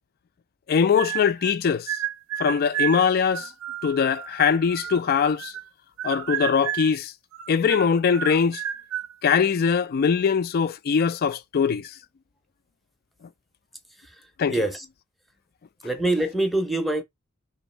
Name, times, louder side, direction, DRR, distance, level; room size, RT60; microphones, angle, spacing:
voice 1, 0.7-2.0 2.4-3.5 3.8-5.5 6.0-7.1 7.5-8.6 9.2-11.9 14.4-14.5, left 6 dB, 45° left, 0.3 m, -22 dB
sound 1, 0.9-1.6 1.9-5.7 6.0-7.0 7.3-9.1, right 11 dB, 65° right, 0.5 m, -32 dB
voice 2, 14.0-14.9 15.8-17.0, right 2 dB, ahead, 0.6 m, -25 dB
3.0 x 2.6 x 4.2 m
head